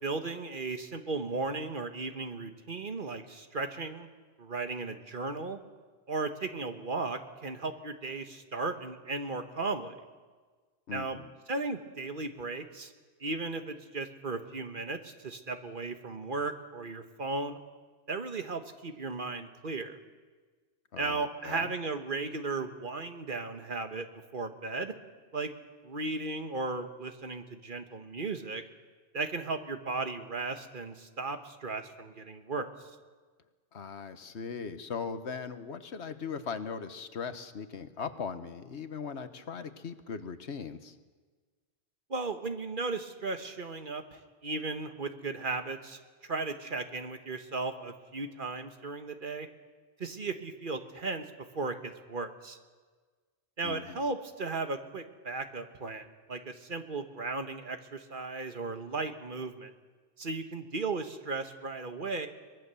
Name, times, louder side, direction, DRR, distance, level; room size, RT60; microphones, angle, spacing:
voice 1, 0.0-4.1 4.4-5.6 6.1-10.0 10.9-11.2 11.5-12.9 13.2-17.6 18.1-20.0 21.0-24.1 24.3-24.9 25.3-25.5 25.8-28.6 29.1-32.7 42.1-46.0 46.3-49.5 50.0-51.2 51.5-52.6 53.6-59.7 60.2-62.3, right 3 dB, 50° right, 7 dB, 1.4 m, -36 dB
voice 2, 10.9-11.3 20.9-21.7 33.7-41.0 53.6-54.1, left 6 dB, 75° left, 10 dB, 1.4 m, -39 dB
23.0 x 20.5 x 6.9 m, 1.4 s
omnidirectional pair, 1.1 m